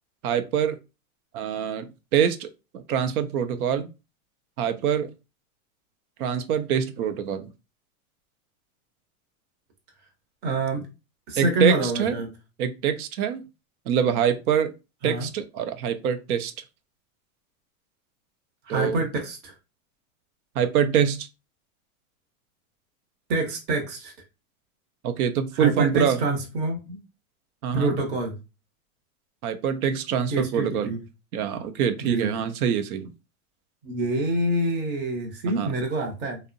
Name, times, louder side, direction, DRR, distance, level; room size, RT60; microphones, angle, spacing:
voice 1, 0.2-0.8 1.3-2.5 2.7-3.9 4.6-5.1 6.2-7.5 11.4-12.2 12.6-13.4 13.9-14.7 15.0-16.5 18.7-19.0 20.6-21.3 25.0-26.2 27.6-27.9 29.4-31.0 31.3-33.1 35.5-35.7, right 8 dB, 85° right, 9 dB, 0.5 m, -25 dB
voice 2, 10.4-10.8 11.3-12.3 15.0-15.3 18.7-19.5 23.3-24.1 25.6-27.0 27.7-28.3 30.3-31.0 32.0-32.3 33.8-36.4, right 2 dB, 25° right, 3 dB, 0.6 m, -26 dB
2.6 x 2.0 x 2.5 m, 0.28 s
supercardioid pair, 140°, 43 cm